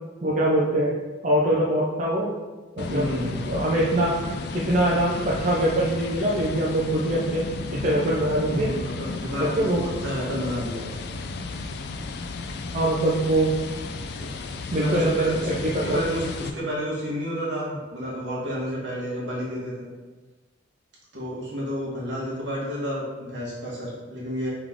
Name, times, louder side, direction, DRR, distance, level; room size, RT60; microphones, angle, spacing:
voice 1, 0.2-0.9 1.2-2.3 2.8-3.1 3.5-4.2 4.5-7.4 7.7-8.7 9.4-9.8 12.7-13.5 14.7-16.0, right 1 dB, 40° right, -5 dB, 0.5 m, -23 dB
sound 1, 2.8-16.5, left 3 dB, 55° left, 0.3 m, -34 dB
voice 2, 2.9-3.4 8.5-11.2 14.2-14.3 14.7-15.5 15.8-19.9 21.1-24.5, equal, 65° right, -6 dB, 1.5 m, -30 dB
3.6 x 3.6 x 3.5 m, 1.3 s
head